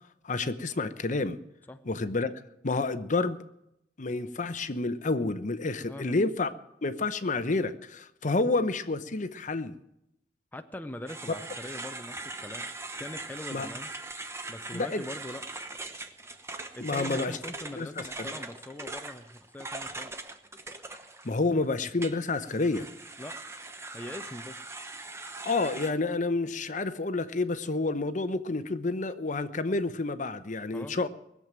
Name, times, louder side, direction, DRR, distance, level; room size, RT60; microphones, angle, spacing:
voice 1, 0.2-1.4 1.9-2.3 2.6-3.4 4.0-6.5 6.8-9.7 13.5-13.7 14.7-15.0 16.8-17.4 17.8-18.3 21.2-22.9 25.4-31.1, left 3 dB, 45° left, 12 dB, 0.8 m, -29 dB
voice 2, 10.5-12.7 13.0-13.9 14.5-15.4 16.7-20.1 23.2-23.4 23.9-24.6 30.7-31.0, left 1 dB, 10° left, 7 dB, 0.6 m, -42 dB
sound 1, 11.1-21.5 22.0-25.9, right 2 dB, 15° right, 1.0 m, -41 dB
20.0 x 7.5 x 9.0 m, 0.82 s
head